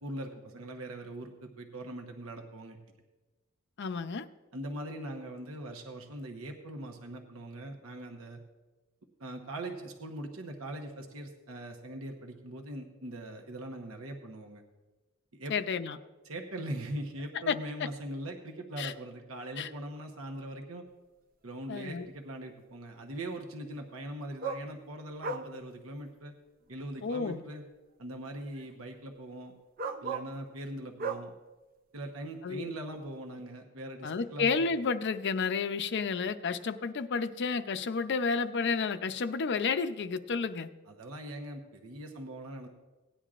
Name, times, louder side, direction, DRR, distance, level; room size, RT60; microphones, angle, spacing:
voice 1, 0.0-2.8 4.5-8.4 9.2-14.6 15.3-15.5 16.2-20.8 21.4-26.3 26.7-27.6 28.0-29.5 30.0-31.3 31.9-34.7 40.9-42.7, right 1 dB, 70° right, 3 dB, 1.0 m, -41 dB
voice 2, 3.8-4.3 15.5-16.0 17.5-17.6 18.8-18.9 19.6-19.7 21.7-22.1 27.0-27.4 32.4-32.7 34.0-40.7, left 5 dB, 55° left, 11 dB, 0.5 m, -31 dB
sound 1, 21.6-21.7 24.4-24.7 25.2-25.5 26.7-26.8 28.5-28.7 29.8-30.3 31.0-31.3 33.4-33.5, right 4 dB, 45° right, 0.6 m, -35 dB
17.5 x 10.0 x 2.5 m, 1.2 s
head